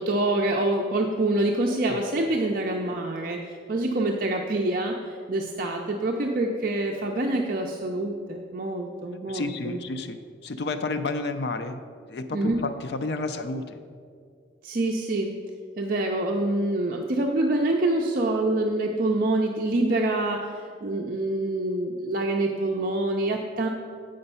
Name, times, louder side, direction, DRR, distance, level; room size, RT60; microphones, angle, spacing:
voice 1, 0.0-9.8 12.3-12.6 14.6-15.3 15.8-23.7, right 2 dB, 45° right, 1 dB, 0.5 m, -26 dB
voice 2, 9.3-11.8 12.1-13.8, left 3 dB, 60° left, 9 dB, 0.4 m, -31 dB
7.9 x 5.1 x 5.4 m, 2.2 s
head